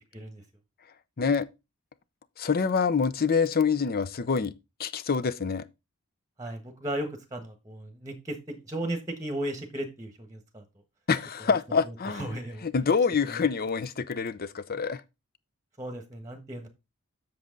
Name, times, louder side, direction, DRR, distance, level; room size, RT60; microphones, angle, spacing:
voice 1, 2.4-4.5 4.8-5.7 11.1-12.3 12.6-15.0, left 5 dB, 45° left, 0.6 m, -26 dB
voice 2, 6.4-10.6 11.8-12.7 13.2-13.4 15.8-16.7, right 1 dB, 15° right, 1.2 m, -36 dB
7.8 x 6.9 x 3.8 m
head